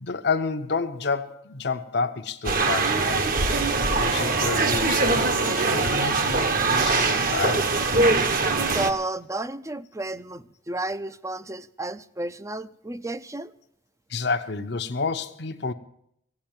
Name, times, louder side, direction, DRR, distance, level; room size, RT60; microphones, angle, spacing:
voice 1, 0.0-3.3 3.9-7.8 14.1-15.7, left 4 dB, 60° left, 5 dB, 0.8 m, -29 dB
sound 1, 2.4-8.9, right 3 dB, 45° right, 1.2 m, -22 dB
voice 2, 8.6-13.5, right 2 dB, 15° right, 14 dB, 0.5 m, -32 dB
16.0 x 8.6 x 8.8 m, 0.72 s
head